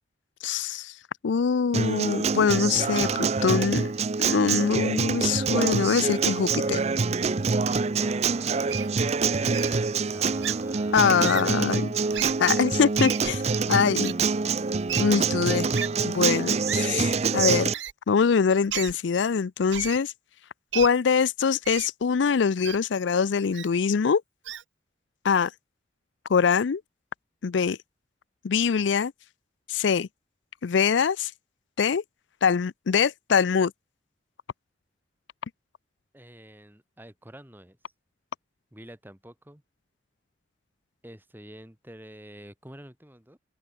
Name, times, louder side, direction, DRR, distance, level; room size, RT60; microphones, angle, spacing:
voice 1, 0.4-0.9 1.2-3.9 4.2-6.8 10.9-11.8 12.4-13.4 13.7-14.1 14.9-15.7 16.0-17.7 18.1-20.1 20.7-24.2 25.2-25.5 26.3-26.8 27.4-27.8 28.4-29.1 29.7-30.1 30.6-31.3 31.8-32.0 32.4-33.7, left 6 dB, 75° left, 0.4 m, -23 dB
Acoustic guitar, 1.7-17.7, right 4 dB, 35° right, 0.5 m, -26 dB
voice 2, 8.0-9.0 9.3-12.3 13.2-14.0 36.1-37.8 38.7-39.6 41.0-43.4, right 1 dB, 10° right, 3.0 m, -47 dB
Wild animals, 8.7-8.9 9.5-9.7 10.4-10.5 11.2-11.4 12.1-12.3 13.0-13.3 14.0-14.1 14.9-15.0 15.7-15.9 16.7-16.9 17.7-17.9 18.7-18.9 19.7-20.0 20.7-20.9 21.6-21.9 22.6-22.8 23.5-23.7 24.4-24.6, right 11 dB, 80° right, 0.9 m, -33 dB
head